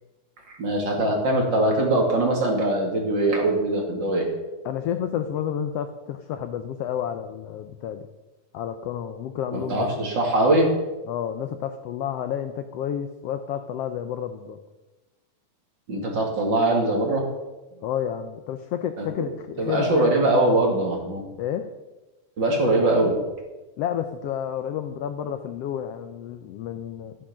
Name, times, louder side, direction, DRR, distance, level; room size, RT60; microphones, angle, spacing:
voice 1, 0.5-4.3 9.5-10.7 15.9-17.2 19.0-19.1 19.6-21.3 22.4-23.2, right 2 dB, 40° right, 0 dB, 2.7 m, -22 dB
voice 2, 4.6-8.1 8.5-10.1 11.0-14.6 17.7-20.1 21.4-21.7 23.8-27.2, left 9 dB, 80° left, 9 dB, 1.4 m, -30 dB
12.5 x 10.0 x 6.1 m, 1.1 s
omnidirectional pair, 3.5 m